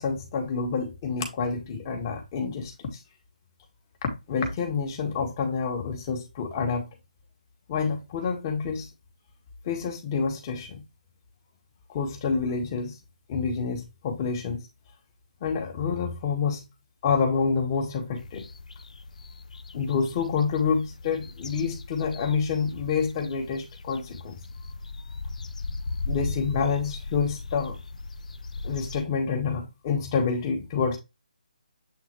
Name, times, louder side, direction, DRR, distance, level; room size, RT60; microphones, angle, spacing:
voice 1, 0.0-3.0 4.3-6.9 7.7-8.9 9.6-10.8 11.9-13.0 13.3-14.6 15.4-16.6 17.0-18.5 19.7-24.4 26.1-27.8 28.6-31.0, left 5 dB, 25° left, 1.8 m, -28 dB
sound 1, 18.2-29.0, left 3 dB, 55° left, 0.9 m, -38 dB
8.3 x 3.9 x 3.1 m
hypercardioid pair, 165°, 5 cm